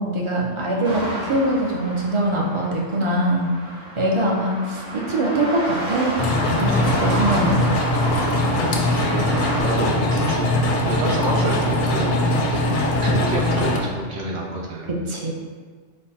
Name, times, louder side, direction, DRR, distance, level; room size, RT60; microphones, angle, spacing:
voice 1, 0.0-3.5 4.0-6.1 6.6-7.6 15.1-15.3, right 1 dB, 40° right, -2 dB, 0.4 m, -22 dB
sound 1, 0.8-9.6, right 1 dB, 90° right, 1.4 m, -30 dB
sound 2, 6.2-13.8, left 1 dB, 55° left, 0.6 m, -21 dB
voice 2, 8.6-9.3 9.6-10.5 10.8-14.9, right 2 dB, 75° right, -3 dB, 1.2 m, -29 dB
5.2 x 2.2 x 4.1 m, 1.5 s
omnidirectional pair, 1.3 m